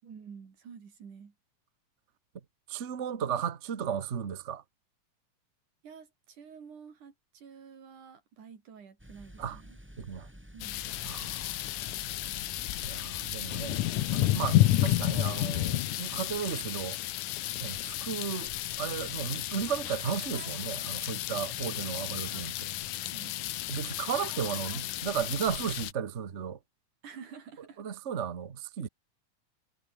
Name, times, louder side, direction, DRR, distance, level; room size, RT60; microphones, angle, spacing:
voice 1, 0.0-1.3 5.8-9.8 10.5-10.9 21.8-22.2 23.0-23.4 27.0-27.9, right 6 dB, 85° right, 5.0 m, -50 dB
voice 2, 2.7-4.6 9.4-9.6 10.0-10.3 11.0-11.5 12.8-13.8 14.1-17.0 17.6-18.5 18.8-22.7 23.7-26.6 27.8-28.9, right 8 dB, 55° right, 0.8 m, -34 dB
sound 1, 9.0-15.3, equal, 5° right, 6.0 m, -50 dB
sound 2, 10.6-25.9, left 14 dB, 85° left, 2.5 m, -32 dB
sound 3, 10.9-14.1 14.7-15.2 15.5-15.6 18.0-18.1 18.3-19.1 19.4-19.5 19.8-20.7 20.9-21.0 22.1-22.5 24.1-24.8, left 6 dB, 65° left, 4.7 m, -54 dB
omnidirectional pair, 3.5 m